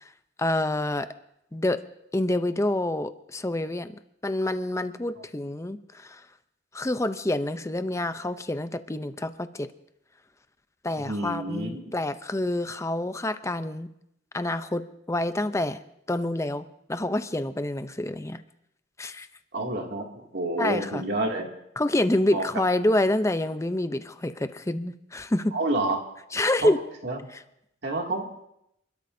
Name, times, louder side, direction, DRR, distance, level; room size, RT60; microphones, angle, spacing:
voice 1, 0.4-1.1 1.5-1.8 2.1-6.2 6.7-9.7 10.8-13.9 14.3-15.8 16.1-18.4 19.0-19.3 20.6-21.0 21.8-25.5 26.3-26.8, left 1 dB, 15° left, 11 dB, 0.6 m, -27 dB
voice 2, 11.0-11.9 19.5-21.5 22.3-22.5 25.5-26.0 26.6-26.7 27.0-27.2 27.8-28.5, right 2 dB, 60° right, 1 dB, 2.5 m, -29 dB
29.0 x 13.0 x 2.7 m, 0.78 s
head